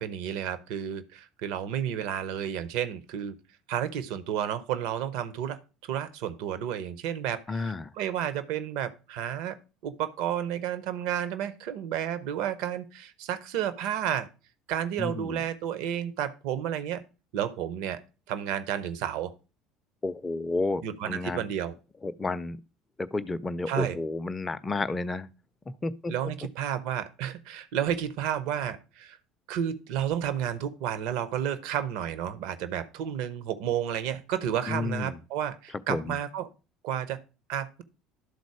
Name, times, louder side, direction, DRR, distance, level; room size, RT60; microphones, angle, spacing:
voice 1, 0.0-3.3 3.7-9.6 9.8-14.3 14.7-17.0 17.3-18.0 18.3-19.3 20.8-21.7 23.7-24.0 26.1-29.2 29.5-36.5 36.8-37.2 37.5-37.8, right 10 dB, 60° right, 0.7 m, -31 dB
voice 2, 7.5-7.9 15.0-15.4 20.0-21.5 22.0-22.6 23.0-25.3 25.8-26.1 34.7-35.2 35.9-36.1, left 3 dB, 20° left, 0.5 m, -31 dB
12.0 x 4.0 x 4.7 m
figure-of-eight pair, 60°, 0 cm